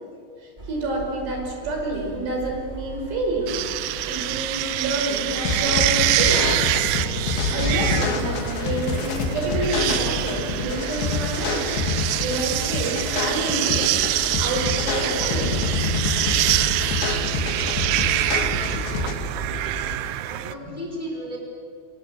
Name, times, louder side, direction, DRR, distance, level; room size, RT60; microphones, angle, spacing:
sound 1, 0.6-7.7 8.0-20.0, right 2 dB, 20° right, 1.3 m, -36 dB
voice 1, 0.7-3.6 4.0-6.6 7.5-11.7 12.2-14.0 14.4-16.0, right 2 dB, 65° right, 1 dB, 7.4 m, -28 dB
sound 2, 3.5-20.5, right 14 dB, 80° right, 2.2 m, -26 dB
sound 3, 5.5-19.1, left 4 dB, 70° left, 4.7 m, -27 dB
voice 2, 19.8-21.4, equal, 10° left, 0 dB, 4.9 m, -35 dB
29.5 x 26.0 x 7.8 m, 2.2 s
omnidirectional pair, 5.4 m